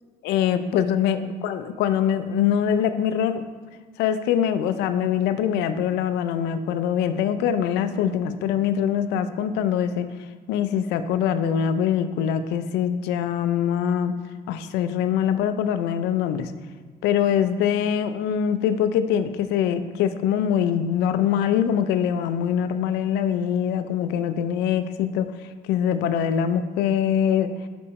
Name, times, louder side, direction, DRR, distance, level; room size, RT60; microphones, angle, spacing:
voice 1, 0.2-3.4 4.0-10.1 10.5-14.1 14.5-16.5 17.0-25.3 25.6-27.5, left 9 dB, 90° left, 11 dB, 0.5 m, -23 dB
5.7 x 5.3 x 4.7 m, 1.4 s
cardioid pair, 110°, 17 cm